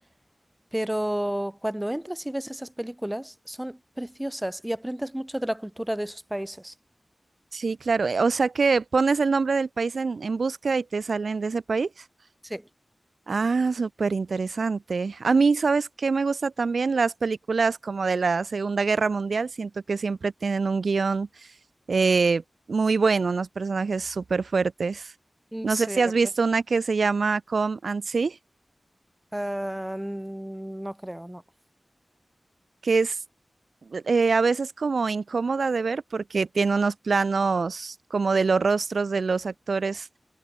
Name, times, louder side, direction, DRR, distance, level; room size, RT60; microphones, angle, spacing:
voice 1, 0.7-6.7 12.4-12.7 25.5-26.0 29.3-31.4, right 1 dB, 10° right, 7.0 m, -32 dB
voice 2, 7.5-11.9 13.3-21.3 21.9-22.4 22.7-25.1 25.6-28.4 32.8-33.2 33.9-40.2, right 4 dB, 75° right, 6.6 m, -24 dB
cardioid pair, 45°, 0 cm